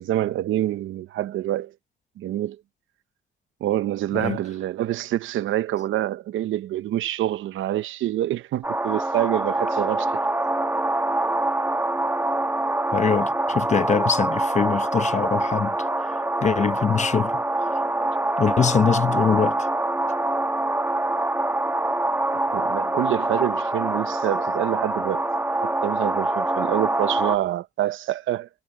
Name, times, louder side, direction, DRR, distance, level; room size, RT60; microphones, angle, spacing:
voice 1, 0.0-1.7 2.2-2.6 3.6-10.1 22.3-25.2 25.6-28.5, right 13 dB, 80° right, 0.9 m, -26 dB
sound 1, 8.6-27.4, right 2 dB, 10° right, 1.4 m, -25 dB
voice 2, 12.9-15.8 16.4-17.8 18.4-19.7, left 6 dB, 35° left, 0.9 m, -23 dB
cardioid pair, 90°, 20 cm